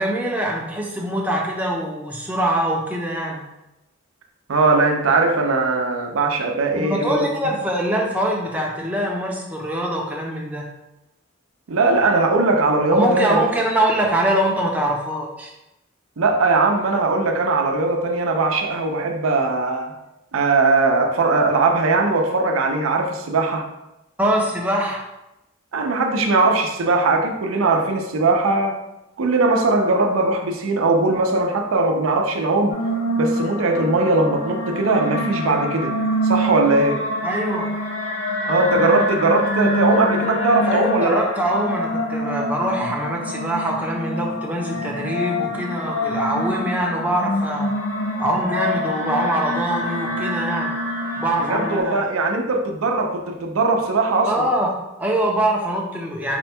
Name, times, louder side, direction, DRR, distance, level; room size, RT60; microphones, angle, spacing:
voice 1, 0.0-3.4 6.8-10.7 12.9-15.5 24.2-25.0 37.2-37.7 40.7-47.7 48.2-50.7 51.2-52.0 54.2-56.4, right 1 dB, 10° right, -2 dB, 0.5 m, -23 dB
voice 2, 4.5-7.3 11.7-13.4 16.2-19.9 20.3-23.7 25.7-28.8 29.2-32.8 33.2-36.0 36.2-37.1 38.5-41.2 51.4-54.5, right 3 dB, 90° right, 4 dB, 0.5 m, -20 dB
sound 1, 32.7-51.8, equal, 60° left, 0.7 m, -26 dB
4.3 x 2.2 x 4.3 m, 0.91 s
head